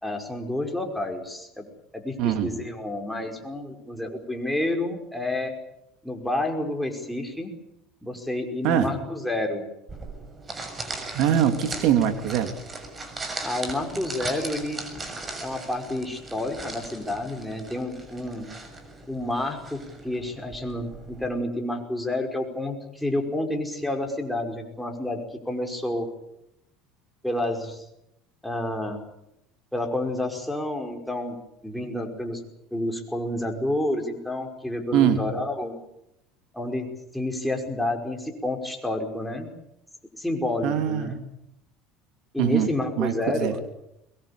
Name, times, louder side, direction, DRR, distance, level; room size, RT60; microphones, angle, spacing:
voice 1, 0.0-1.7 1.9-5.5 6.0-7.5 8.0-9.7 13.4-14.8 15.4-18.5 19.1-25.2 25.5-26.1 27.2-27.8 28.4-29.0 29.7-31.4 31.6-32.4 32.7-35.7 36.5-39.5 40.1-41.1 42.3-43.6, left 1 dB, ahead, 2 dB, 5.4 m, -29 dB
voice 2, 2.2-2.5 8.6-8.9 11.1-12.5 34.9-35.3 40.6-41.2 42.4-42.7 43.0-43.5, right 9 dB, 65° right, 7 dB, 2.9 m, -23 dB
sound 1, 9.9-21.3, right 3 dB, 20° right, 6.8 m, -38 dB
23.5 x 22.0 x 8.7 m, 0.83 s
supercardioid pair, 110°, 0 cm